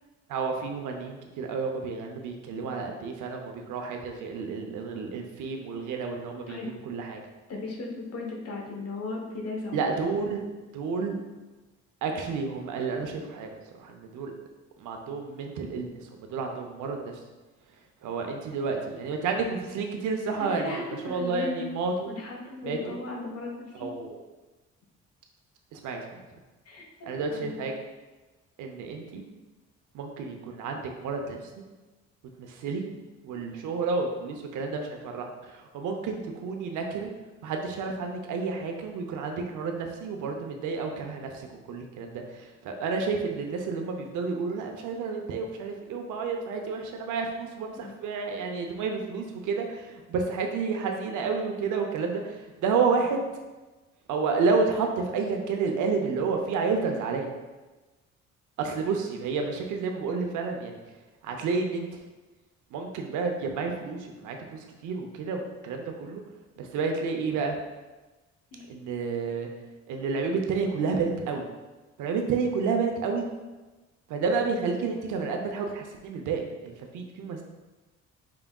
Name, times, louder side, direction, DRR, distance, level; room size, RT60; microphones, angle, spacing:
voice 1, 0.3-7.2 9.7-11.2 12.0-14.3 14.8-17.1 18.0-22.1 22.6-23.0 23.8-24.2 25.7-26.2 27.1-27.7 28.6-29.2 29.9-31.4 32.4-32.9 33.2-37.1 37.4-53.2 54.1-57.3 58.6-60.8 61.2-62.0 62.7-66.2 66.6-67.5 68.7-69.5 69.9-71.4 72.0-73.3 74.1-77.4, right 4 dB, 80° right, 3 dB, 0.7 m, -30 dB
voice 2, 7.5-9.9 20.4-21.7 22.1-23.9 26.6-27.7 47.8-47.9 68.5-68.7, left 3 dB, 55° left, 0 dB, 1.0 m, -37 dB
4.7 x 3.5 x 2.3 m, 1.2 s
cardioid pair, 90°, 30 cm